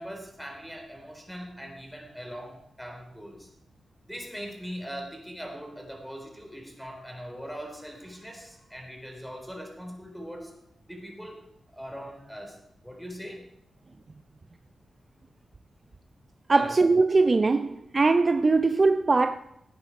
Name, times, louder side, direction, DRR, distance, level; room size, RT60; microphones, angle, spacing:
voice 1, 0.0-3.5 4.0-10.5 10.9-11.4 11.7-12.6 12.8-13.4 16.5-16.8, equal, ahead, 4.1 m, -41 dB
voice 2, 16.5-19.4, right 3 dB, 35° right, 0.5 m, -21 dB
17.0 x 9.7 x 4.8 m
cardioid pair, 90°, 0 cm